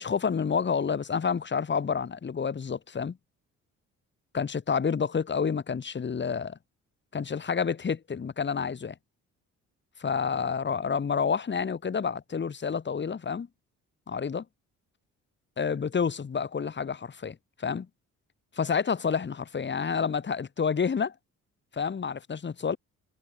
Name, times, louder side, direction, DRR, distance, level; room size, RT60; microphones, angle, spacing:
voice 1, 0.0-3.2 4.3-6.6 7.1-8.9 10.0-13.5 14.1-14.4 15.6-17.9 18.6-21.1 21.7-22.8, left 6 dB, 35° left, 2.5 m, -29 dB
cardioid pair, 90°, 30 cm